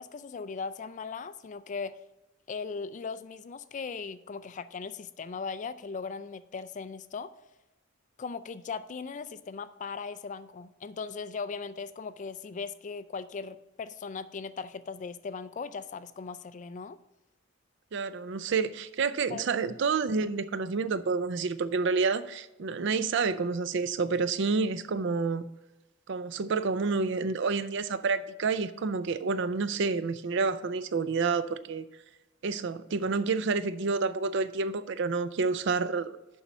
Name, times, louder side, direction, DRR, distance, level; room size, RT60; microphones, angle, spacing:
voice 1, 0.0-2.0 2.5-7.3 8.2-17.0 19.3-19.4, left 5 dB, 40° left, 14 dB, 0.4 m, -38 dB
voice 2, 17.9-25.4 26.1-31.8 32.4-36.2, right 4 dB, 65° right, 14 dB, 0.4 m, -29 dB
7.1 x 5.4 x 6.1 m, 1.0 s
head